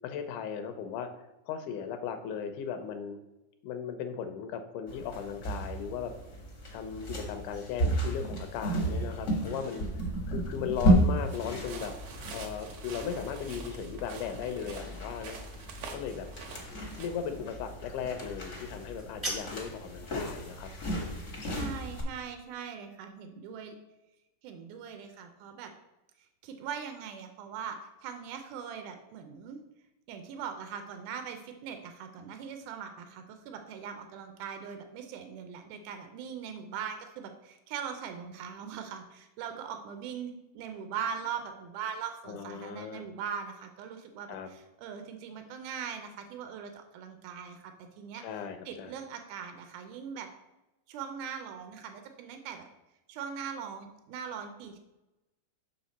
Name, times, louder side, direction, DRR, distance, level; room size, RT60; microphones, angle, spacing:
voice 1, 0.0-1.1 1.5-3.2 3.6-6.1 6.7-11.9 12.3-15.4 15.9-16.3 17.0-20.7 42.3-43.0 44.3-44.5 48.1-48.9, left 7 dB, 85° left, 8 dB, 2.2 m, -37 dB
sound 1, 4.9-22.0, right 1 dB, 55° left, 0.7 m, -33 dB
sound 2, 11.3-17.1, right 5 dB, 70° right, 2.1 m, -47 dB
sound 3, 18.8-19.8, right 1 dB, 15° right, 0.8 m, -38 dB
voice 2, 21.4-23.8 24.4-25.7 26.4-29.6 30.1-48.2 48.7-50.3 50.9-52.7 53.1-54.8, right 7 dB, 85° right, 6 dB, 2.2 m, -41 dB
6.4 x 5.4 x 4.1 m, 0.98 s
omnidirectional pair, 3.6 m